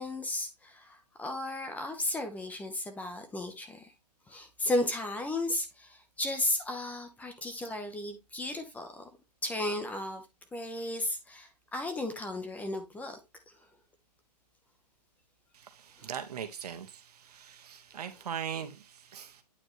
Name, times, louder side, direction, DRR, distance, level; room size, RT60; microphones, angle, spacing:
voice 1, 0.0-3.9 4.3-9.1 9.4-10.2 10.5-13.2 13.5-13.6 16.0-16.1 17.9-18.2, left 1 dB, 5° left, 0.8 m, -34 dB
voice 2, 15.8-19.4, right 8 dB, 70° right, 1.4 m, -40 dB
8.9 x 4.6 x 3.1 m
hypercardioid pair, 145°, 21 cm